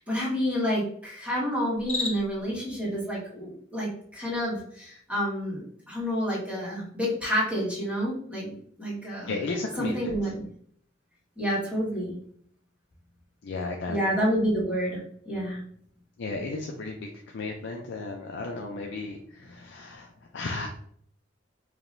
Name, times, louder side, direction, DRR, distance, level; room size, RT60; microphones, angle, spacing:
voice 1, 0.0-9.3 9.8-10.4 11.4-12.1 13.9-15.6, equal, 5° right, -7 dB, 1.6 m, -29 dB
Cricket, 1.7-2.5, left 3 dB, 30° left, 1.0 m, -33 dB
voice 2, 9.3-10.3 13.4-14.0 16.2-20.7, left 3 dB, 65° left, 1 dB, 0.5 m, -34 dB
4.9 x 2.9 x 2.6 m, 0.62 s
head